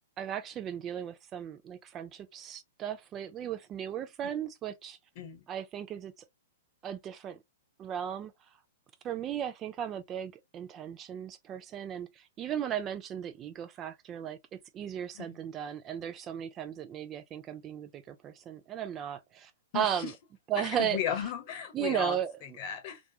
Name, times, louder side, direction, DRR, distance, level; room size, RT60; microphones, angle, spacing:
voice 1, 0.2-5.0 5.5-6.1 6.8-7.4 7.8-8.3 9.0-20.1 20.5-21.0 21.7-22.6, right 9 dB, 25° right, 0.4 m, -36 dB
voice 2, 19.7-20.1 20.6-22.2 22.6-23.0, left 9 dB, 45° left, 0.8 m, -35 dB
2.3 x 2.1 x 2.7 m
hypercardioid pair, 115°, 0 cm